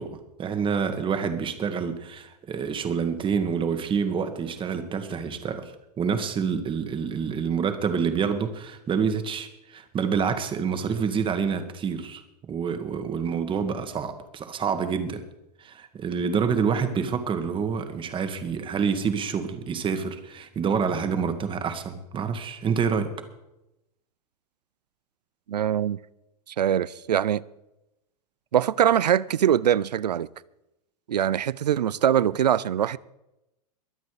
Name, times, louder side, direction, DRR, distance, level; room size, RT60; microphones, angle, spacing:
voice 1, 0.0-15.2 15.6-23.1, right 6 dB, 25° right, 1.7 m, -27 dB
voice 2, 25.5-26.0 26.6-27.4 28.5-30.3 31.1-33.0, right 10 dB, 85° right, 0.5 m, -22 dB
22.5 x 8.3 x 4.9 m
hypercardioid pair, 105°, 21 cm